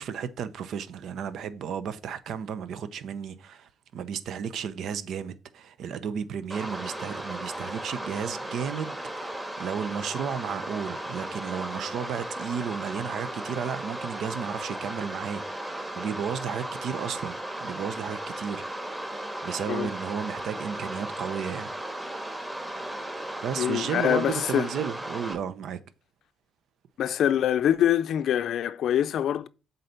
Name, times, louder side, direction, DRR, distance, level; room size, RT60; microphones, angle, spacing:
voice 1, 0.0-18.8 19.4-21.7 23.4-25.8, right 7 dB, 75° right, 0.7 m, -33 dB
sound 1, 6.5-25.3, right 1 dB, 15° right, 2.2 m, -36 dB
voice 2, 23.6-24.7 27.0-29.5, left 10 dB, 70° left, 0.5 m, -24 dB
7.6 x 4.2 x 6.7 m
cardioid pair, 90°, 0 cm